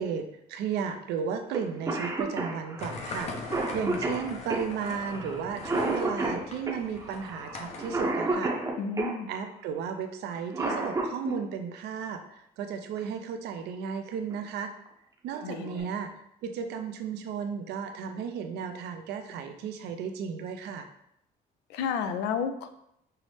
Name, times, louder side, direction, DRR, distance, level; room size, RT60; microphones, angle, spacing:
voice 1, 0.0-8.5 9.3-12.2 12.6-14.7 15.2-16.1 16.4-20.9, right 7 dB, 75° right, 7 dB, 0.5 m, -34 dB
Cough, 1.5-1.6 1.9-9.2 10.3-11.4 13.0-13.1 14.1-14.4 14.9-15.0 15.3-15.8, right 2 dB, 20° right, 0.7 m, -31 dB
sound 1, 2.8-8.1, left 3 dB, 40° left, 0.6 m, -41 dB
voice 2, 8.8-9.3 15.4-15.9 21.7-22.7, left 6 dB, 90° left, 7 dB, 0.4 m, -31 dB
5.6 x 2.0 x 3.1 m, 0.76 s
cardioid pair, 110°, 17 cm